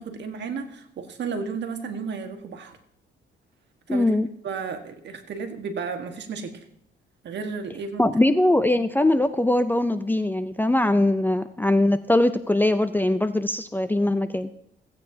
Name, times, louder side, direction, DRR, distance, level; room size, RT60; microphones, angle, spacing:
voice 1, 0.0-2.8 3.9-4.1 4.4-6.6 7.2-8.1, right 5 dB, 60° right, 6 dB, 1.5 m, -33 dB
voice 2, 3.9-4.3 8.0-14.5, left 1 dB, 10° left, 11 dB, 0.5 m, -21 dB
16.0 x 8.9 x 2.8 m, 0.72 s
cardioid pair, 90°, 20 cm